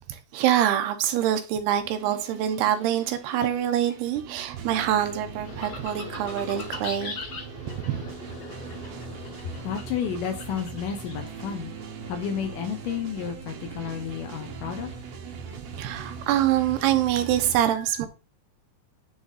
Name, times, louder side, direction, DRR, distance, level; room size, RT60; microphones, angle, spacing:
voice 1, 0.1-7.2 7.7-8.0 15.7-18.1, right 11 dB, 90° right, 2.9 m, -25 dB
sound 1, 1.8-17.5, right 5 dB, 70° right, 1.6 m, -40 dB
sound 2, 5.4-11.3, left 4 dB, 50° left, 2.0 m, -40 dB
voice 2, 9.4-15.0, left 8 dB, 75° left, 2.1 m, -32 dB
10.0 x 3.5 x 4.0 m
omnidirectional pair, 4.5 m